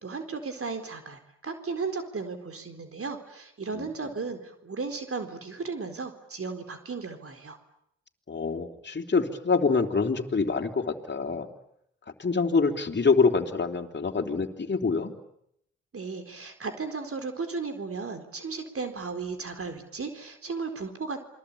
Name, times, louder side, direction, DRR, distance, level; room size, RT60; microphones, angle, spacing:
voice 1, 0.0-7.6 15.9-21.2, right 4 dB, 50° right, 7 dB, 4.1 m, -35 dB
voice 2, 8.3-11.5 12.2-15.1, left 4 dB, 35° left, 5 dB, 3.5 m, -25 dB
28.0 x 22.5 x 8.6 m, 0.77 s
supercardioid pair, 45°, 30 cm